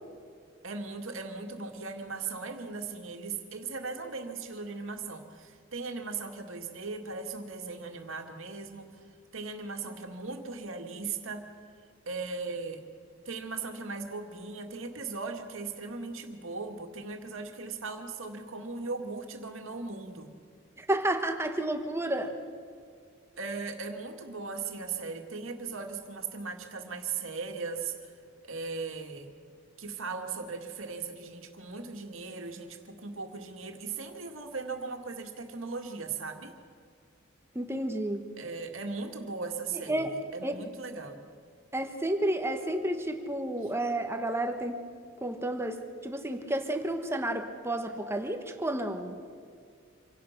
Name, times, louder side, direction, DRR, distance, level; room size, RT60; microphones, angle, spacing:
voice 1, 0.6-8.9 9.3-11.5 12.1-12.8 13.3-20.3 23.4-28.1 28.4-29.3 29.8-36.5 38.4-41.2, right 4 dB, 80° right, 4 dB, 2.0 m, -38 dB
voice 2, 20.8-22.4 37.5-38.2 39.9-40.1 40.4-40.6 41.7-44.8 45.2-49.2, right 1 dB, 10° right, 6 dB, 1.2 m, -31 dB
26.5 x 17.0 x 5.8 m, 2.2 s
head